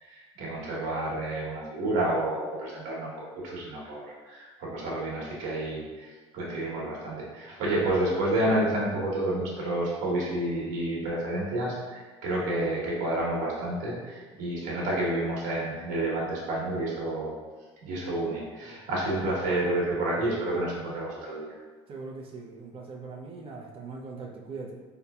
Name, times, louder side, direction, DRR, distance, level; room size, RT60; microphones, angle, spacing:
voice 1, 0.0-17.3 17.8-21.6, right 1 dB, 65° right, -5 dB, 1.2 m, -30 dB
voice 2, 21.9-24.8, right 4 dB, 40° right, 0 dB, 0.6 m, -41 dB
3.7 x 2.8 x 2.3 m, 1.4 s
hypercardioid pair, 85°, 14 cm